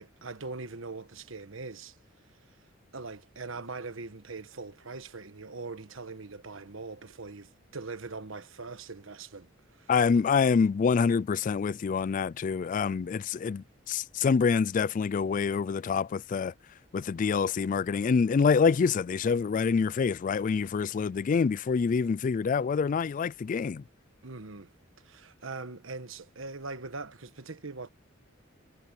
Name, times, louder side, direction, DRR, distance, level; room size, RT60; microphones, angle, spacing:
voice 1, 0.0-1.9 2.9-9.9 24.2-24.7 25.0-27.9, right 3 dB, 80° right, 1.3 m, -41 dB
voice 2, 9.9-16.5 16.9-23.8, left 5 dB, 40° left, 0.3 m, -26 dB
head